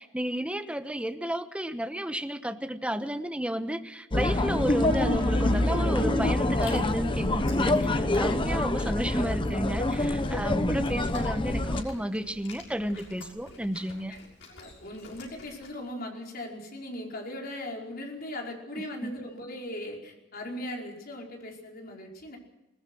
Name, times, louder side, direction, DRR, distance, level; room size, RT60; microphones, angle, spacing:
voice 1, 0.0-14.1 19.0-19.2, equal, 5° right, 8 dB, 1.2 m, -32 dB
sound 1, 4.1-11.8, left 1 dB, 25° left, 1.0 m, -26 dB
sound 2, 4.5-11.8, left 1 dB, 90° right, 3.7 m, -40 dB
Chewing mastication, 6.5-15.7, left 3 dB, 80° left, 6.4 m, -49 dB
voice 2, 14.5-22.4, left 1 dB, 50° left, 0 dB, 5.0 m, -39 dB
21.0 x 20.0 x 6.3 m, 0.99 s
head